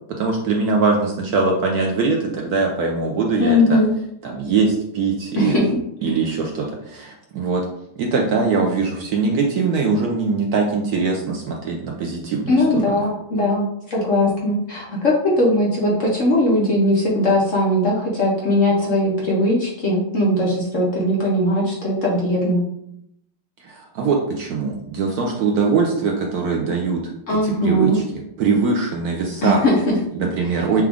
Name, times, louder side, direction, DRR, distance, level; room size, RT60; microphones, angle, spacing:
voice 1, 0.2-3.8 4.2-5.6 6.0-7.6 8.0-13.0 23.6-27.0 27.3-28.0 28.4-29.6 30.1-30.8, right 4 dB, 70° right, 1 dB, 1.0 m, -22 dB
voice 2, 3.4-3.9 5.4-5.8 12.5-22.6 27.3-28.0 29.4-30.0, left 1 dB, 55° left, -3 dB, 1.0 m, -19 dB
6.0 x 2.3 x 3.5 m, 0.77 s
omnidirectional pair, 2.0 m